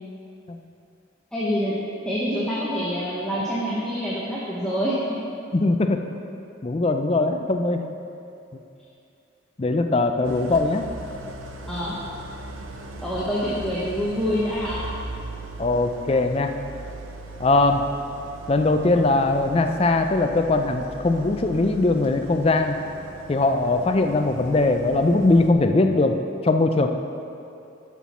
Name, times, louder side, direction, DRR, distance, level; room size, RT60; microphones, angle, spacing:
voice 1, 1.3-1.8 2.0-5.2 11.7-11.9 13.0-14.8, equal, 5° left, -9 dB, 0.9 m, -26 dB
voice 2, 5.5-6.0 6.6-7.8 9.6-10.8 15.6-16.5 17.4-17.8 18.5-22.8 23.3-26.2 26.4-26.9, left 2 dB, 30° left, 6 dB, 0.4 m, -20 dB
Idling, 10.2-25.5, right 2 dB, 85° right, 0.8 m, -39 dB
11.5 x 5.9 x 4.2 m, 2.7 s
head